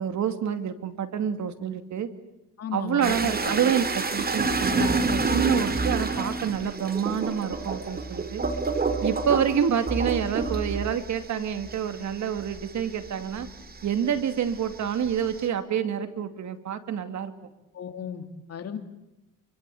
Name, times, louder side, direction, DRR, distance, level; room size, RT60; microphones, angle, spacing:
voice 1, 0.0-2.1 2.7-8.4 9.0-13.5 13.8-17.3, right 8 dB, 60° right, 9 dB, 2.7 m, -27 dB
voice 2, 2.6-3.5 17.7-18.8, left 8 dB, 50° left, 7 dB, 3.3 m, -35 dB
sound 1, 3.0-13.9 14.3-15.4, right 3 dB, 30° right, 3.2 m, -28 dB
28.5 x 24.0 x 8.6 m, 0.94 s
cardioid pair, 115°, 32 cm